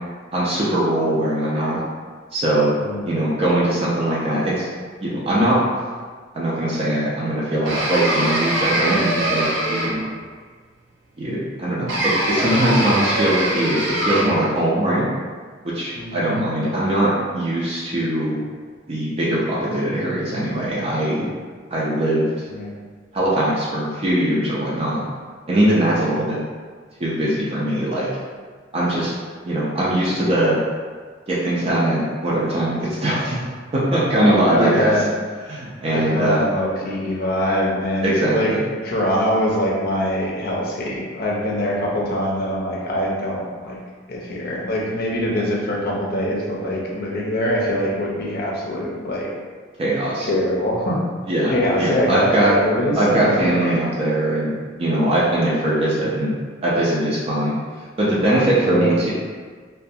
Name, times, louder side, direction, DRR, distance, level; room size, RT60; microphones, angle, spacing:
voice 1, 0.3-1.8 2.3-2.7 3.0-4.7 5.0-5.6 6.3-9.9 11.2-15.1 15.6-18.4 18.9-21.3 21.7-22.3 23.1-25.0 25.5-26.4 27.0-28.1 28.7-29.1 29.4-30.6 31.3-33.4 33.7-34.9 35.5-36.4 38.0-38.6 49.8-50.3 51.3-52.5 53.0-56.3 56.6-57.5 58.0-59.1, right 1 dB, 30° right, -7 dB, 0.4 m, -21 dB
sound 1, 7.7-10.2 11.9-14.5, right 1 dB, 80° right, 0.6 m, -22 dB
voice 2, 16.0-16.3 22.5-22.7 25.9-26.1 34.5-35.1 35.9-38.5 38.8-43.8 44.1-49.3 50.2-51.0 51.5-53.8 58.6-58.9, equal, 55° left, -3 dB, 0.5 m, -23 dB
2.4 x 2.2 x 2.6 m, 1.6 s
head